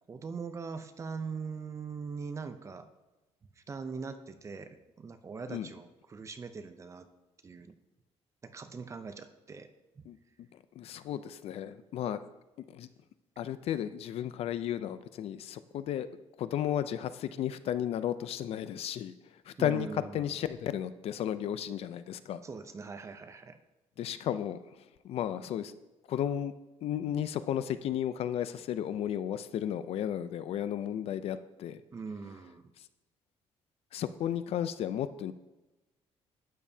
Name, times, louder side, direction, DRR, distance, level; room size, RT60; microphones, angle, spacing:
voice 1, 0.1-2.9 3.7-7.1 7.4-7.7 8.4-9.7 10.0-10.1 19.6-20.1 22.4-23.6 31.9-32.6, right 5 dB, 25° right, 9 dB, 0.6 m, -41 dB
voice 2, 10.1-12.2 12.7-12.9 13.4-16.1 16.4-22.4 24.0-25.7 26.1-26.5 26.8-31.8 33.9-35.3, left 10 dB, 60° left, 13 dB, 0.5 m, -34 dB
12.0 x 9.0 x 2.8 m, 1.1 s
cardioid pair, 150°, 11 cm